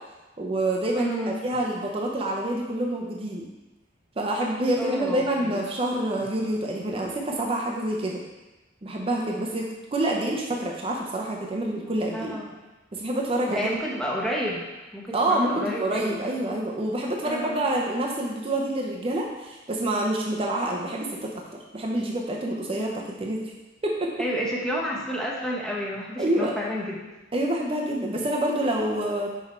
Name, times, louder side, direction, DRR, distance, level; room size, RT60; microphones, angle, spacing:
voice 1, 0.4-3.5 4.2-8.2 8.8-12.4 12.9-13.7 15.1-21.3 21.7-23.4 23.8-24.1 26.2-26.6 27.3-29.3, right 1 dB, 30° right, -1 dB, 0.6 m, -27 dB
voice 2, 0.9-1.4 4.8-5.6 10.3-10.4 12.1-12.6 13.5-14.6 14.9-16.2 17.2-17.6 24.2-27.0, equal, 5° left, -4 dB, 0.9 m, -30 dB
6.0 x 4.6 x 4.3 m, 1.1 s
head